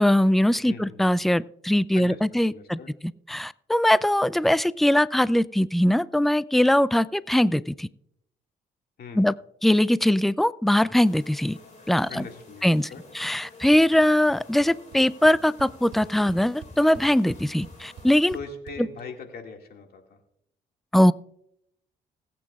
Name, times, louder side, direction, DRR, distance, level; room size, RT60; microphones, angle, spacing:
voice 1, 0.0-2.8 3.3-7.9 9.2-9.3 9.6-11.6 11.9-12.2 12.6-12.9 13.1-18.4 20.9-21.1, left 1 dB, ahead, 0.4 m, -21 dB
voice 2, 0.6-1.2 1.9-2.9 9.0-9.3 12.1-13.0 18.3-20.2, left 4 dB, 65° left, 2.0 m, -41 dB
sound 1, 10.9-18.4, left 3 dB, 40° left, 4.2 m, -50 dB
sound 2, 13.6-14.0 14.3-14.7 14.9-15.0 15.2-18.8, right 4 dB, 75° right, 1.7 m, -45 dB
19.5 x 8.5 x 2.4 m
supercardioid pair, 60°, 18 cm